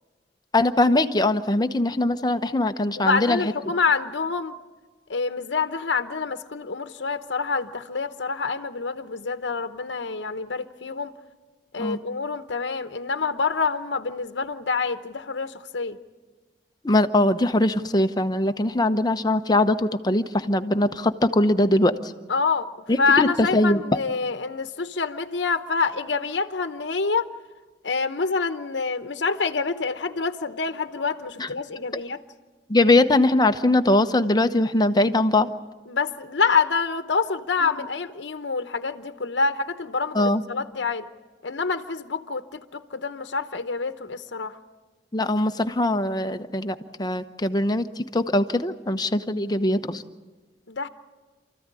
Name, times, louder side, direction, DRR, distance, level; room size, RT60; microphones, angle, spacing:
voice 1, 0.5-3.5 11.8-12.0 16.8-22.1 22.9-23.8 31.4-31.5 31.9-32.0 32.7-35.5 40.1-40.4 45.1-50.0, left 1 dB, 25° left, 9 dB, 0.9 m, -21 dB
voice 2, 3.0-4.5 5.1-11.1 11.7-16.0 22.3-22.7 23.0-27.3 27.8-32.2 35.9-41.0 41.4-44.6 50.7-50.9, left 4 dB, 85° left, 9 dB, 0.9 m, -26 dB
28.5 x 14.5 x 9.8 m, 1.3 s
head